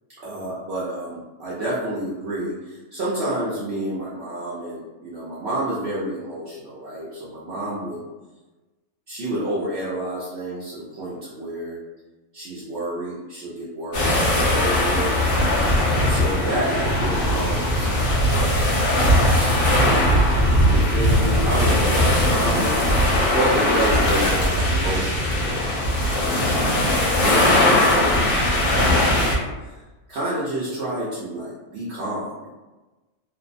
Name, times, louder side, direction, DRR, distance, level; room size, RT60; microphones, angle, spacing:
voice 1, 0.2-8.0 9.1-11.8 12.3-15.7 16.0-18.5 18.8-20.0 20.3-23.0 23.3-26.4 27.2-29.8 30.1-32.5, right 1 dB, 60° right, -8 dB, 0.8 m, -29 dB
sound 1, 13.9-29.4, left 1 dB, 50° left, 0.6 m, -19 dB
2.5 x 2.0 x 2.5 m, 1.1 s
omnidirectional pair, 1.4 m